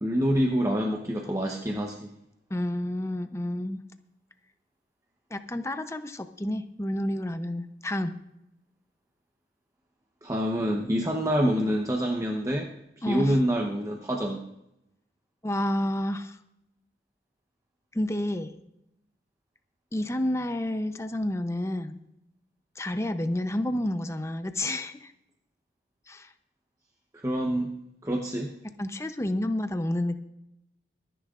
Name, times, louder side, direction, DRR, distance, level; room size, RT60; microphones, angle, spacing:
voice 1, 0.0-2.1 10.2-12.7 13.0-14.4 27.1-27.7 28.0-28.5, equal, 20° right, 1 dB, 0.9 m, -26 dB
voice 2, 2.5-3.8 5.3-8.1 13.0-13.3 15.4-16.4 17.9-18.6 19.9-22.0 22.8-25.1 26.1-26.3 28.8-30.2, left 1 dB, 15° left, 9 dB, 0.6 m, -30 dB
24.5 x 10.0 x 2.5 m, 0.85 s
head